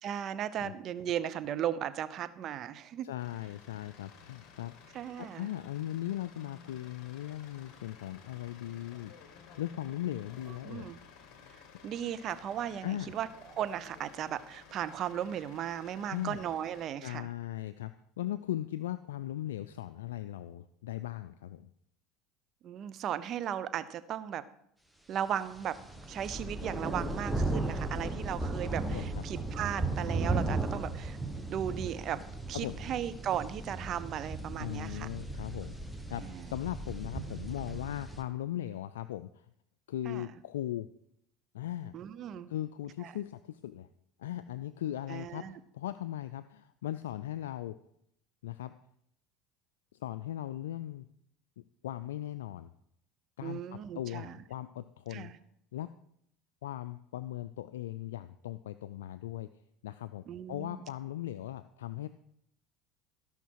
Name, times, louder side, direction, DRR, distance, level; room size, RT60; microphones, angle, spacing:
voice 1, 0.0-3.1 4.9-5.6 10.6-11.0 11.8-17.3 22.6-24.4 25.1-25.8 26.1-32.2 32.5-35.1 36.1-36.5 40.0-40.3 41.9-42.5 43.0-43.1 45.1-45.6 53.4-54.4 55.1-55.4 60.3-60.9, right 10 dB, 50° right, 14 dB, 0.8 m, -36 dB
voice 2, 3.0-4.7 5.2-9.1 9.6-10.9 12.8-13.1 15.9-16.4 17.0-17.9 18.2-21.7 28.9-29.1 32.6-32.8 34.6-35.7 36.1-39.3 39.9-40.9 41.5-41.9 42.5-43.9 44.2-45.4 45.7-47.8 48.4-48.7 50.0-51.1 51.8-52.7 53.4-53.6 53.9-55.3 55.7-55.9 56.6-59.5 59.8-62.1, left 13 dB, 90° left, 12 dB, 0.4 m, -38 dB
sound 1, 3.2-16.9, left 6 dB, 60° left, 1.8 m, -55 dB
sound 2, 25.5-38.2, right 2 dB, ahead, 1.3 m, -36 dB
16.5 x 5.8 x 4.7 m, 0.72 s
supercardioid pair, 90°, 0 cm